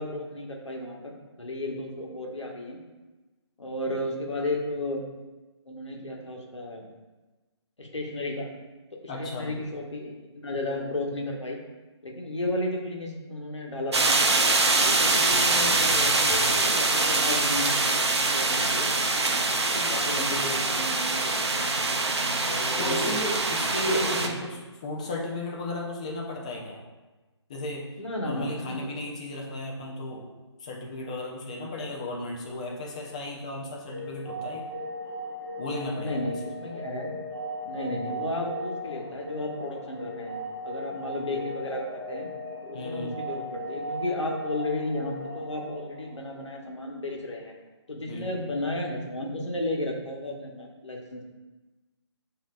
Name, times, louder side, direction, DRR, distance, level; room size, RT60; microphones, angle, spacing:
voice 1, 0.0-2.8 3.6-5.0 5.7-6.9 7.8-8.5 8.9-11.6 12.0-14.4 14.8-18.9 19.3-21.7 22.4-23.2 23.6-24.4 28.0-28.9 36.0-37.2 37.6-42.3 42.6-47.5 47.9-51.2, left 1 dB, 80° left, 0 dB, 1.0 m, -33 dB
voice 2, 9.1-9.5 22.8-26.8 27.5-27.9 28.2-30.3 30.6-34.7 35.6-36.2 42.7-43.2 48.0-48.3, left 1 dB, 15° left, -1 dB, 0.4 m, -34 dB
sound 1, 13.9-24.3, right 3 dB, 65° right, 0.6 m, -24 dB
sound 2, 33.9-46.6, equal, 40° right, 1.4 m, -37 dB
7.1 x 2.7 x 2.4 m, 1.2 s
figure-of-eight pair, 150°, 15 cm